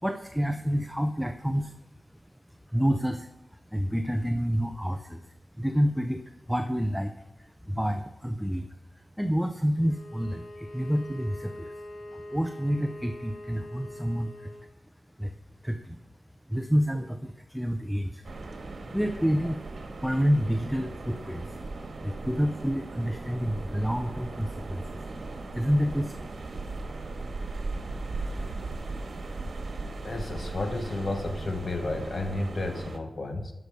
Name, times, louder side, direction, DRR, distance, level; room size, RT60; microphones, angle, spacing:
voice 1, 0.0-1.7 2.5-5.2 5.6-8.7 9.0-11.7 12.1-14.5 15.2-15.3 15.6-16.0 16.5-18.3 18.6-19.6 20.0-25.0 25.5-26.3, equal, ahead, 6 dB, 0.6 m, -29 dB
Bowed string instrument, 9.7-14.7, left 1 dB, 90° left, 3.8 m, -43 dB
sound 1, 18.2-33.0, right 3 dB, 75° right, 1.5 m, -38 dB
voice 2, 30.0-33.5, left 2 dB, 60° left, 5 dB, 1.1 m, -32 dB
11.0 x 6.8 x 5.3 m, 1.0 s
wide cardioid pair, 95°, 0 cm